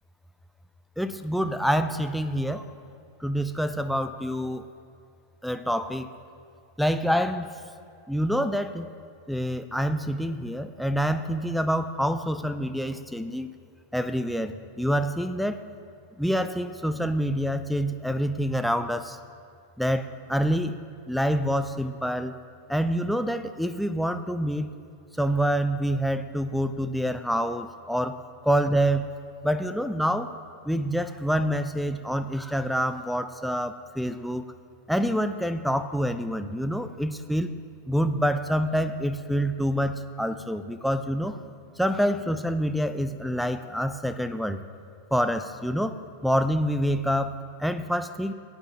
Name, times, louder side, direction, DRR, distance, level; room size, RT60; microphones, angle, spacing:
voice 1, 1.0-2.6 3.2-4.7 5.4-6.1 6.8-7.5 8.1-8.9 9.3-13.5 13.9-15.6 16.2-19.2 19.8-20.8 21.1-22.3 22.7-24.7 25.2-28.2 28.4-29.2 29.4-30.3 30.6-34.5 34.9-37.5 37.9-41.4 41.8-44.6 45.1-45.9 46.2-48.3, equal, ahead, 11 dB, 0.5 m, -26 dB
19.0 x 8.9 x 2.9 m, 2.4 s
figure-of-eight pair, 90°, 0 cm